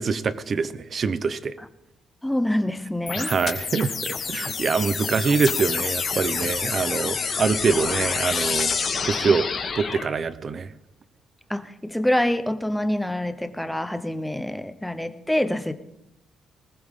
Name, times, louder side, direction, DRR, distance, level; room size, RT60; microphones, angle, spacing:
voice 1, 0.0-1.5 3.2-8.7 9.0-9.5 9.8-10.7, right 5 dB, 35° right, 15 dB, 0.7 m, -24 dB
voice 2, 2.2-3.6 9.2-9.3 11.5-15.7, left 1 dB, 5° left, 10 dB, 0.9 m, -26 dB
sound 1, 3.1-10.1, left 5 dB, 40° left, 2.5 m, -27 dB
20.5 x 18.5 x 3.7 m, 0.85 s
cardioid pair, 155°, 0 cm